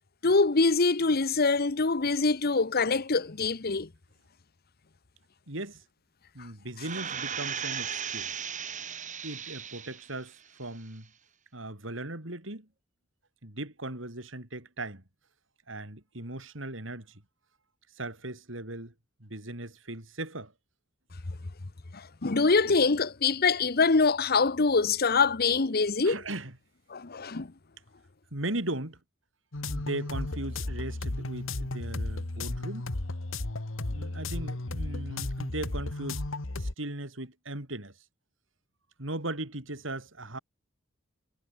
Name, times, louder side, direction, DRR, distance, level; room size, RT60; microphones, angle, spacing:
voice 1, 0.2-3.9 21.9-26.2 26.9-27.5, left 4 dB, 50° left, 1.0 m, -24 dB
voice 2, 5.5-5.8 6.3-8.3 9.2-11.1 11.5-12.7 13.4-15.0 15.7-17.2 17.9-18.9 19.2-20.5 26.0-26.6 28.3-29.0 29.7-32.9 33.9-36.2 36.6-37.9 39.0-40.4, right 2 dB, 70° right, 4.8 m, -38 dB
sound 1, 6.8-10.2 10.6-10.7, right 8 dB, 40° right, 5.8 m, -36 dB
sound 2, 29.5-36.7, left 2 dB, 80° left, 1.7 m, -34 dB
head